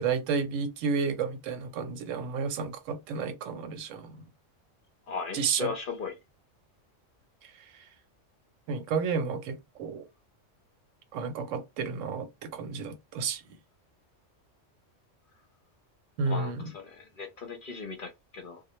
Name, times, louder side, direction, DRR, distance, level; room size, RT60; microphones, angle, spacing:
voice 1, 0.0-4.2 5.3-5.7 8.7-10.0 11.1-13.4 16.2-16.7, right 5 dB, 85° right, 0.9 m, -31 dB
voice 2, 5.1-6.1 16.3-18.6, left 5 dB, 55° left, 0.7 m, -37 dB
2.1 x 2.1 x 2.9 m
omnidirectional pair, 1.3 m